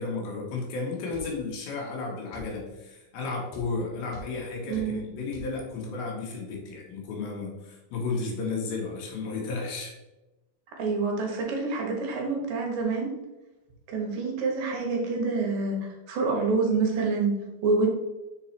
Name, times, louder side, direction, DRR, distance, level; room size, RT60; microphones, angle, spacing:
voice 1, 0.0-9.9, left 3 dB, 80° left, -1 dB, 3.2 m, -33 dB
sound 1, 1.1-1.3 2.3-2.5 3.5-3.7 4.1-4.3 4.7-4.9 5.3-5.5, right 2 dB, 55° left, 2.1 m, -43 dB
voice 2, 4.7-5.0 10.8-13.1 13.9-17.4 17.6-17.9, right 4 dB, 75° right, 1 dB, 2.8 m, -27 dB
6.5 x 4.2 x 4.3 m, 1.0 s
omnidirectional pair, 4.2 m